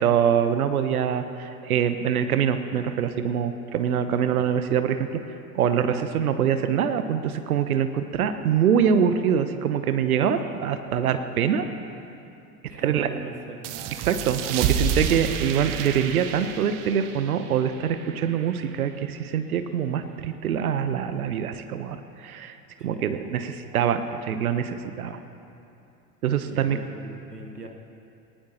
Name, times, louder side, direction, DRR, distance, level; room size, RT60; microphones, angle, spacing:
voice 1, 0.0-5.2 5.5-11.6 12.8-13.1 14.0-25.2 26.2-26.8, right 8 dB, 70° right, 9 dB, 1.0 m, -24 dB
voice 2, 12.7-13.7 22.8-23.3 26.5-27.7, right 2 dB, 90° right, 3 dB, 1.5 m, -39 dB
sound 1, 13.6-18.9, right 7 dB, 45° right, 1.0 m, -30 dB
19.0 x 19.0 x 2.9 m, 2.7 s
figure-of-eight pair, 75°, 46 cm